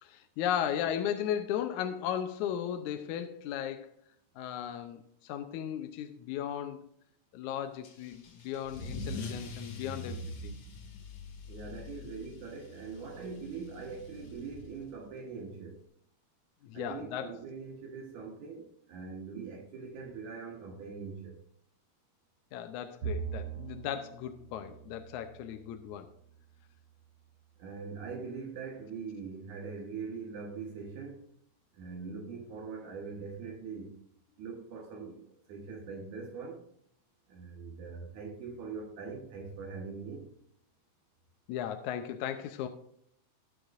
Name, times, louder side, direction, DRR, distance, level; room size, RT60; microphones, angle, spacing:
voice 1, 0.0-3.9 4.4-6.8 7.3-10.6 16.6-17.3 22.5-26.1 41.5-42.7, left 10 dB, 80° left, 2.0 m, -36 dB
Car / Engine starting / Accelerating revving vroom, 7.8-15.0, left 2 dB, 60° left, 2.6 m, -43 dB
voice 2, 11.5-15.8 16.7-21.4 27.6-31.3 31.7-34.0 34.4-36.7 37.3-40.3, right 5 dB, 75° right, 2.8 m, -42 dB
Bowed string instrument, 23.0-26.5, right 7 dB, 50° right, 3.7 m, -42 dB
19.0 x 6.8 x 2.5 m
omnidirectional pair, 3.5 m